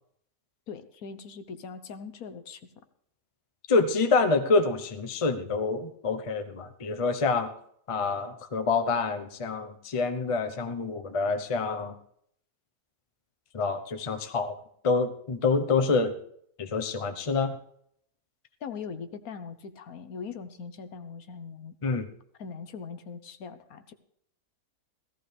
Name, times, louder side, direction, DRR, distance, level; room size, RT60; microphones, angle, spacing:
voice 1, 0.7-2.6 18.6-21.7 22.4-23.9, left 5 dB, 70° left, 10 dB, 1.4 m, -41 dB
voice 2, 3.7-7.5 7.9-11.9 13.5-14.5 14.8-16.1 16.6-17.6 21.8-22.1, left 4 dB, 25° left, 7 dB, 0.7 m, -27 dB
16.5 x 14.5 x 3.4 m, 0.68 s
omnidirectional pair, 1.6 m